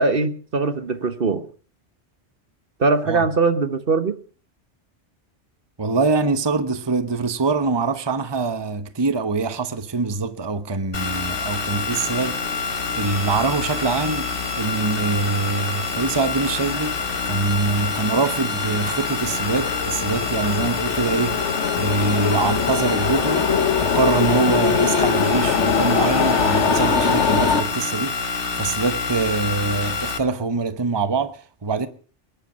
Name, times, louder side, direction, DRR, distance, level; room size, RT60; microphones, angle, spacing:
voice 1, 0.0-1.4 2.8-4.1, right 3 dB, 55° right, 1.3 m, -21 dB
voice 2, 5.8-14.3 14.5-17.0 17.2-21.4 21.8-23.5 23.8-31.9, right 4 dB, 25° right, 1.0 m, -24 dB
sound 1, 10.9-30.2, left 4 dB, 50° left, 1.8 m, -27 dB
sound 2, 11.9-27.6, left 6 dB, 85° left, 1.5 m, -24 dB
23.0 x 10.5 x 5.2 m
omnidirectional pair, 1.2 m